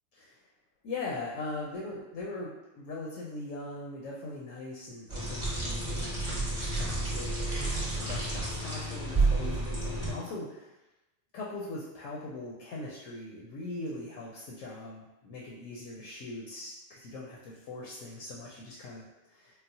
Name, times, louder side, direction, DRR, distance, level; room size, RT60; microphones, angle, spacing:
voice 1, 0.8-7.3 7.6-10.8 11.3-19.6, left 2 dB, 80° left, -4 dB, 0.9 m, -41 dB
sound 1, 5.1-10.1, right 2 dB, 30° right, 0.9 m, -31 dB
3.9 x 2.0 x 2.6 m, 0.99 s
omnidirectional pair, 1.3 m